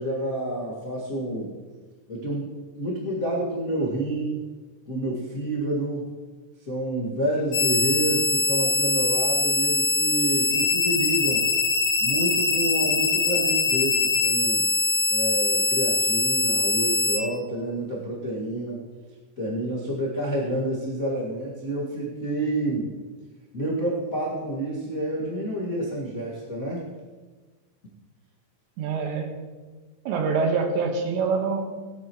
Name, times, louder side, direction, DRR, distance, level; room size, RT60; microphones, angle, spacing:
voice 1, 0.0-1.5 2.1-4.5 4.9-6.1 6.6-11.4 12.0-14.6 15.1-18.8 19.4-22.9 23.5-26.9, right 1 dB, 75° left, -6 dB, 0.7 m, -29 dB
sound 1, 7.5-17.2, left 4 dB, 50° left, 2.7 m, -23 dB
voice 2, 28.8-29.3 30.1-31.7, right 4 dB, 80° right, 4 dB, 3.6 m, -25 dB
18.5 x 11.5 x 3.1 m, 1.4 s
omnidirectional pair, 5.2 m